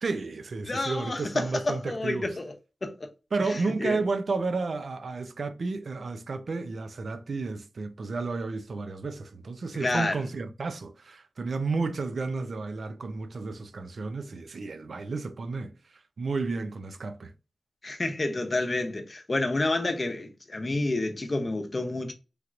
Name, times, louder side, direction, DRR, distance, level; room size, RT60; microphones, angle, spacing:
voice 1, 0.0-2.3 3.3-17.3, right 3 dB, 75° right, 0.4 m, -32 dB
voice 2, 0.6-2.5 2.8-3.1 3.8-4.0 9.8-10.2 17.8-22.1, left 2 dB, 45° left, 0.7 m, -29 dB
3.2 x 2.8 x 2.4 m
cardioid pair, 60°, 0 cm